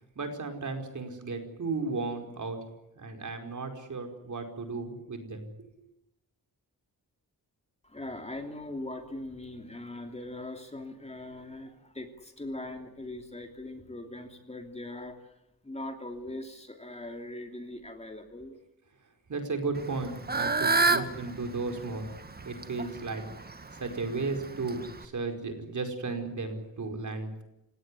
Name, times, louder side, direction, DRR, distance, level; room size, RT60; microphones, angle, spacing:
voice 1, 0.1-2.6 3.0-5.7 19.3-22.1 22.4-23.2 23.7-27.4, right 3 dB, 55° right, 5 dB, 4.9 m, -34 dB
voice 2, 7.8-15.4 15.6-18.5, left 1 dB, 15° left, 5 dB, 3.0 m, -41 dB
Fowl / Bird, 19.8-25.1, right 3 dB, 25° right, 1.8 m, -30 dB
29.5 x 17.5 x 9.9 m, 0.89 s
wide cardioid pair, 165°, 36 cm